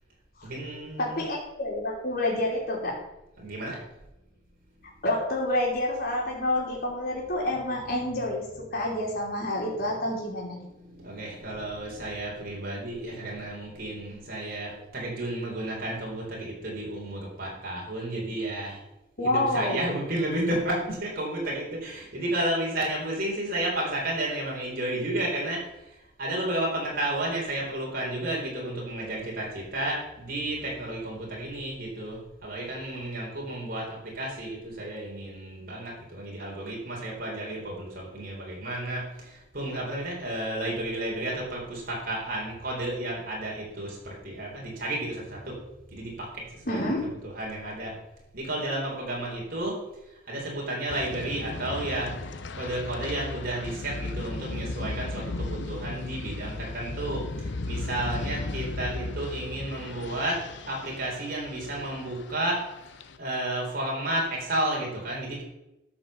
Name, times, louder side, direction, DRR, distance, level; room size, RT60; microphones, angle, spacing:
voice 1, 0.4-1.2 3.4-3.8 7.1-8.2 8.4-8.8 9.9-18.8 19.2-25.9 26.2-45.6 45.9-47.9 48.3-49.8 50.3-52.1 52.5-60.4 60.7-62.6 63.2-65.4, right 1 dB, 45° right, -2 dB, 3.9 m, -32 dB
voice 2, 1.0-3.0 5.0-10.6 19.2-19.9 46.7-47.1, left 1 dB, 50° left, -6 dB, 3.1 m, -28 dB
sound 1, 50.9-63.2, left 2 dB, 65° left, 0.8 m, -36 dB
12.5 x 5.7 x 7.1 m, 0.92 s
head